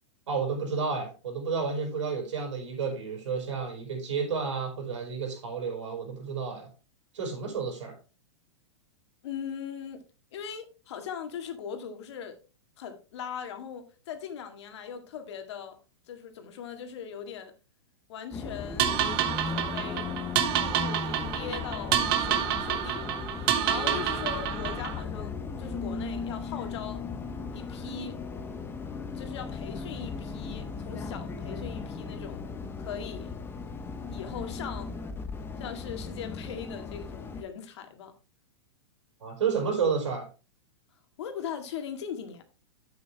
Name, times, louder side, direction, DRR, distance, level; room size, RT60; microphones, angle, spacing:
voice 1, 0.3-6.7 7.1-8.0 39.2-40.3, right 5 dB, 80° right, 5.2 m, -31 dB
voice 2, 9.2-10.0 10.3-12.4 12.8-15.8 16.1-17.5 18.1-18.9 19.5-20.1 20.7-27.0 27.5-28.2 29.1-32.5 32.8-33.4 34.1-35.0 35.6-38.1 41.2-42.4, left 7 dB, 65° left, 2.0 m, -40 dB
Bus, 18.3-37.4, left 5 dB, 15° left, 1.1 m, -37 dB
sound 1, 18.8-25.0, right 10 dB, 50° right, 1.3 m, -28 dB
8.4 x 8.4 x 3.4 m
hypercardioid pair, 125°, 15 cm